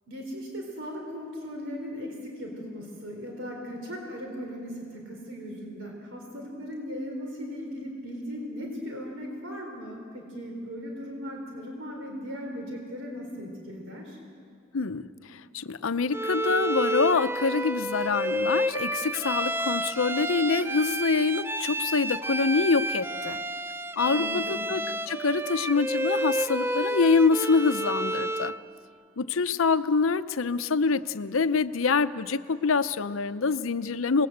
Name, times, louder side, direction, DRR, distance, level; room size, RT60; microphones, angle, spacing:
voice 1, 0.1-14.2 24.0-24.7, equal, 70° right, 1 dB, 4.2 m, -38 dB
voice 2, 14.7-23.4 24.0-28.5 29.2-34.3, left 4 dB, 80° left, 12 dB, 0.7 m, -25 dB
Bowed string instrument, 16.1-28.6, right 1 dB, 10° right, 0.5 m, -30 dB
26.0 x 20.0 x 8.0 m, 2.3 s
head